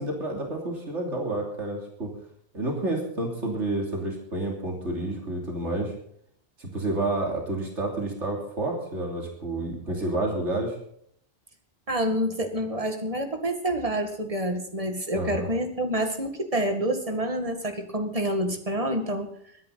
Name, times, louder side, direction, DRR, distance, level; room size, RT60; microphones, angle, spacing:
voice 1, 0.0-2.1 2.5-5.9 6.6-10.8 15.1-15.5, right 2 dB, 80° right, 0 dB, 3.5 m, -29 dB
voice 2, 11.9-19.3, right 1 dB, 30° right, 5 dB, 2.1 m, -28 dB
22.5 x 10.5 x 4.1 m, 0.66 s
omnidirectional pair, 1.2 m